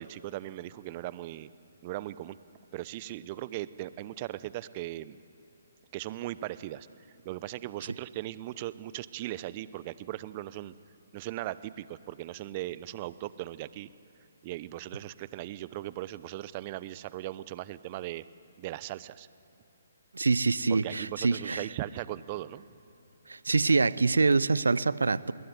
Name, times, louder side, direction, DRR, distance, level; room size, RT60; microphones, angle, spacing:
voice 1, 0.0-1.5 1.8-2.4 2.7-5.2 5.9-6.9 7.2-10.7 11.1-13.9 14.4-18.2 18.6-19.3 20.7-22.6, right 15 dB, 35° right, 16 dB, 0.8 m, -38 dB
voice 2, 20.1-21.6 23.3-25.3, right 4 dB, 75° right, 19 dB, 0.8 m, -25 dB
28.5 x 20.5 x 9.5 m, 2.9 s
figure-of-eight pair, 135°, 0 cm